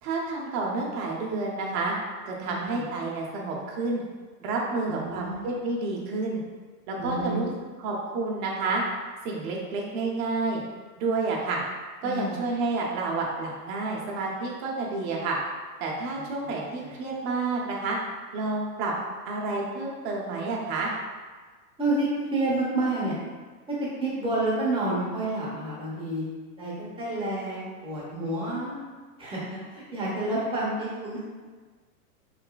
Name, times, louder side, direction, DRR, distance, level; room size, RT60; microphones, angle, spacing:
voice 1, 0.0-2.0 2.3-4.0 4.4-6.4 6.9-7.5 7.8-8.8 9.2-10.6 11.0-11.6 12.0-15.4 15.8-18.0 18.3-18.9 19.2-20.9, right 3 dB, 45° right, -2 dB, 0.8 m, -29 dB
voice 2, 2.4-2.8 4.9-5.4 7.0-7.5 12.0-12.4 16.2-16.3 16.8-17.0 21.8-23.1 24.0-26.2 26.6-28.8 29.2-31.3, right 2 dB, 10° right, -8 dB, 0.9 m, -29 dB
3.2 x 2.9 x 2.2 m, 1.4 s
hypercardioid pair, 120°, 48 cm